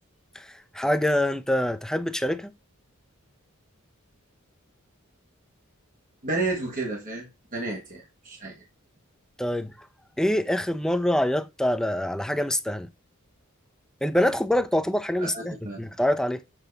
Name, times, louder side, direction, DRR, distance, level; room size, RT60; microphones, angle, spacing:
voice 1, 0.3-2.5 9.4-9.9 10.2-12.9 14.0-16.4, left 1 dB, 5° left, 0.5 m, -25 dB
voice 2, 6.2-8.5 15.2-15.8, right 2 dB, 40° right, 1.6 m, -31 dB
7.4 x 4.0 x 4.0 m
head